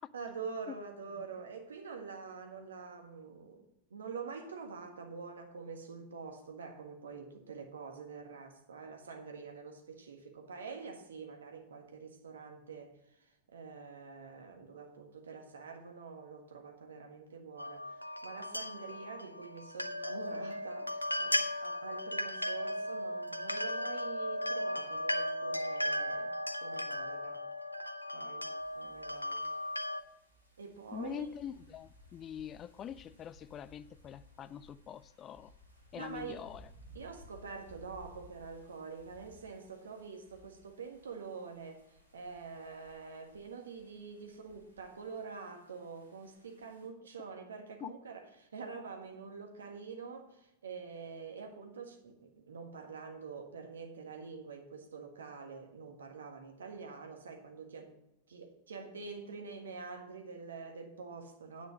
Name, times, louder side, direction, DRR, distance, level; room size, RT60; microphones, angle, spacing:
voice 1, 0.1-13.0 13.5-26.3 26.6-27.4 28.1-28.5 28.7-29.4 30.6-31.3 35.9-36.4 36.9-41.9 42.1-58.0 58.3-61.7, right 5 dB, 70° right, 1.6 m, -46 dB
sound 1, 17.6-30.0, equal, 85° left, 0.5 m, -36 dB
sound 2, 28.6-46.9, left 1 dB, 85° right, 2.3 m, -60 dB
voice 2, 30.9-35.5 35.9-36.6 47.8-47.9, left 9 dB, 30° left, 0.3 m, -44 dB
9.2 x 6.2 x 6.1 m
figure-of-eight pair, 90°, 0 cm